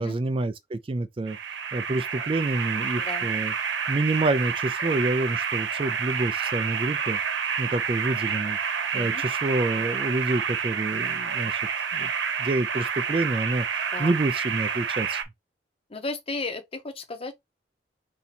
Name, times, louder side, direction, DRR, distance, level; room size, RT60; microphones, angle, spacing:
voice 1, 0.0-1.4 1.7-3.5 3.9-11.6 11.9-12.1 12.4-15.2, right 2 dB, 30° right, 0.3 m, -28 dB
sound 1, 1.3-15.2, right 6 dB, 90° right, 0.9 m, -29 dB
voice 2, 3.0-3.3 8.9-9.2 13.9-14.1 15.9-17.3, left 3 dB, 30° left, 0.8 m, -34 dB
4.0 x 2.8 x 4.1 m
head